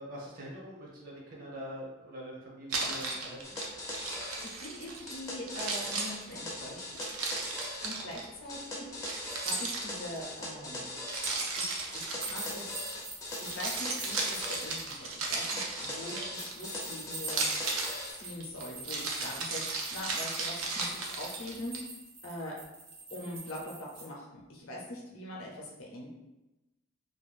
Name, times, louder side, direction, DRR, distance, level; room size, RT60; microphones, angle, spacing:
voice 1, 0.0-3.6 8.1-8.2 25.5-25.7, equal, 45° right, -3 dB, 0.7 m, -44 dB
Keys jangling, 2.7-5.1 5.5-8.2 9.0-10.2 11.1-12.9 13.4-16.7 17.2-21.8, right 3 dB, 90° right, 0.5 m, -35 dB
sound 1, 3.4-4.5 5.1-7.9 8.5-11.4 11.9-14.8 15.3-18.1, left 1 dB, 15° left, 0.4 m, -41 dB
voice 2, 4.1-7.1 7.5-8.9 9.3-10.9 11.6-12.9 13.4-17.5 18.1-21.7 22.2-22.6 23.1-26.1, left 1 dB, 75° left, -2 dB, 0.7 m, -43 dB
sound 2, 12.2-14.9 16.3-24.0, right 3 dB, 60° right, 1.1 m, -44 dB
2.8 x 2.2 x 2.4 m, 0.99 s
head